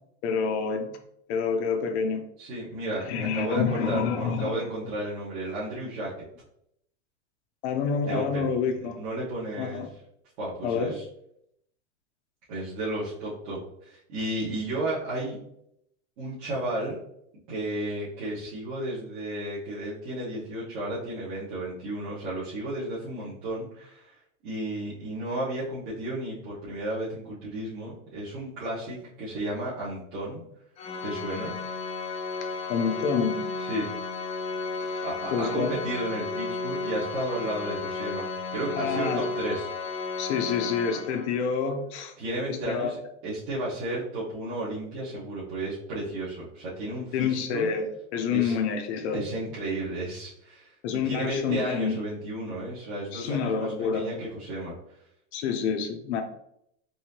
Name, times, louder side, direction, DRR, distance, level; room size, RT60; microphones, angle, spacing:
voice 1, 0.2-0.9 1.3-2.2 3.0-4.5 7.6-9.0 9.6-9.9 10.6-10.9 32.4-33.5 34.8-35.0 35.3-35.8 38.8-39.2 40.2-42.1 42.5-43.0 47.1-49.2 50.8-51.9 53.1-54.1 55.3-56.2, left 6 dB, 65° left, 5 dB, 0.7 m, -28 dB
voice 2, 2.4-6.3 8.0-8.5 8.8-9.9 10.4-11.0 12.5-15.4 16.2-17.0 17.5-24.2 24.4-30.4 31.0-31.5 33.6-33.9 35.0-39.7 42.2-47.7 48.3-48.5 49.1-54.7, right 1 dB, 45° right, -10 dB, 1.6 m, -33 dB
Organ, 30.8-41.6, left 4 dB, 15° left, 0.5 m, -33 dB
4.7 x 2.7 x 2.9 m, 0.75 s
supercardioid pair, 140°, 37 cm